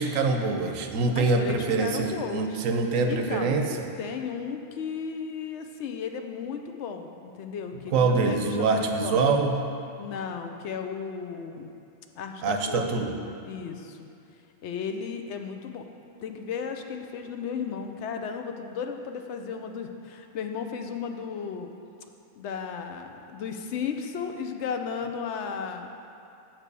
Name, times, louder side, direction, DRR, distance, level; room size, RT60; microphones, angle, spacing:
voice 1, 0.0-3.7 7.9-9.5 12.4-13.1, right 4 dB, 85° right, 4 dB, 1.1 m, -24 dB
voice 2, 1.2-2.6 3.1-3.6 4.0-9.3 10.0-11.7 12.1-12.8 13.4-14.1 14.6-15.9 16.2-21.7 22.4-25.9, left 6 dB, 65° left, 5 dB, 0.9 m, -34 dB
7.4 x 4.6 x 6.7 m, 2.6 s
omnidirectional pair, 1.3 m